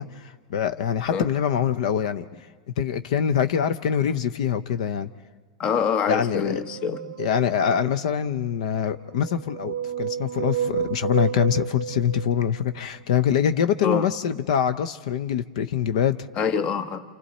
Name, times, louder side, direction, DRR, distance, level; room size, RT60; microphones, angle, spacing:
voice 1, 0.0-2.2 2.8-5.1 6.1-6.6 7.2-16.3, left 8 dB, 60° left, 13 dB, 0.6 m, -24 dB
voice 2, 5.6-7.1 13.8-14.1 16.4-17.0, left 6 dB, 25° left, 11 dB, 0.8 m, -25 dB
sound 1, 6.5-8.1 9.0-12.8, right 8 dB, 80° right, 0.6 m, -31 dB
29.0 x 28.0 x 4.2 m, 1.4 s
supercardioid pair, 165°, 4 cm